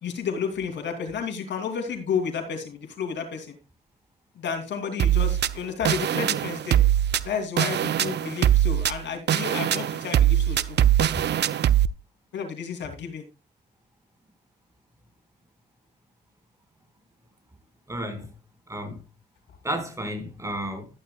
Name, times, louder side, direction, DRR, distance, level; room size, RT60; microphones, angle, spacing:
voice 1, 0.0-3.6 4.4-6.8 7.2-10.8 12.3-13.3, left 6 dB, 75° left, 2.9 m, -31 dB
sound 1, 5.0-11.9, right 11 dB, 70° right, 0.6 m, -22 dB
voice 2, 17.9-18.3 18.7-19.0 19.6-20.9, right 1 dB, 15° right, 4.7 m, -32 dB
13.0 x 11.5 x 2.3 m
cardioid pair, 90°, 18 cm